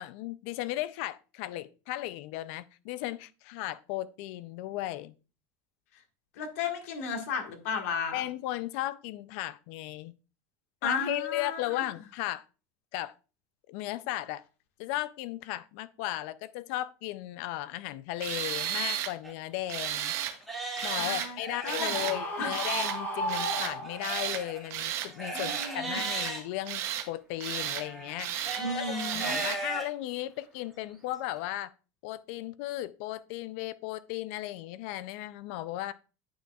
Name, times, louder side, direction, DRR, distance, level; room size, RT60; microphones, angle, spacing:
voice 1, 0.0-5.1 8.1-10.1 10.8-12.4 12.9-13.1 13.7-14.4 14.8-20.1 20.8-28.8 29.1-31.7 32.0-35.9, left 15 dB, 55° left, 0.4 m, -36 dB
voice 2, 6.4-8.2 10.8-11.9 20.9-21.4 21.6-22.5 25.3-26.0 28.6-29.4, left 5 dB, 80° left, 1.6 m, -34 dB
Tools, 18.2-19.1 19.7-20.4 20.8-21.3 21.7-22.2 22.5-23.0 23.3-23.7 24.0-24.4 24.7-25.1 25.3-26.3 26.7-27.1 27.4-27.8 28.2-28.6 29.0-29.6, right 10 dB, 35° right, 0.7 m, -33 dB
Livestock farm animals working animals, 19.2-19.3 19.9-20.0 20.4-22.1 23.8-26.4 27.5-29.9 30.4-30.5 31.1-31.2, right 3 dB, ahead, 1.8 m, -38 dB
Screaming, 21.6-24.3, right 1 dB, 30° left, 2.1 m, -34 dB
9.3 x 6.2 x 2.3 m
cardioid pair, 170°, 8 cm